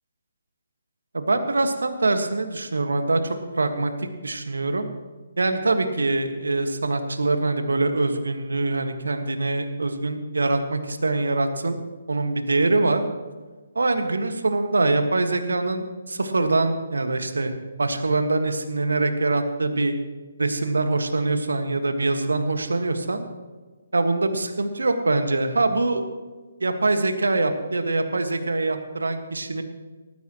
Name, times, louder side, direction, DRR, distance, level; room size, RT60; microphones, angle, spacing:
voice 1, 1.1-4.9 5.4-11.8 12.1-13.1 13.7-17.5 17.8-19.9 20.4-23.2 23.9-26.0 26.6-29.6, right 2 dB, 75° right, 7 dB, 1.6 m, -24 dB
19.0 x 14.5 x 3.0 m, 1.3 s
figure-of-eight pair, 140°, 0 cm